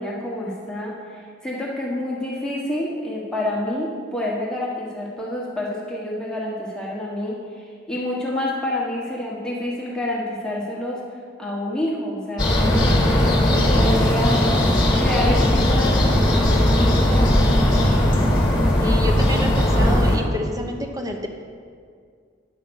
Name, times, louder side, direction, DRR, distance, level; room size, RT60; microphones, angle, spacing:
voice 1, 0.0-11.0 11.4-14.5 15.0-17.4, left 1 dB, 5° left, -5 dB, 1.3 m, -28 dB
sound 1, 12.4-20.2, left 1 dB, 25° left, 1.6 m, -18 dB
voice 2, 18.8-21.3, equal, 20° right, 4 dB, 0.7 m, -28 dB
10.5 x 5.6 x 7.0 m, 2.1 s
head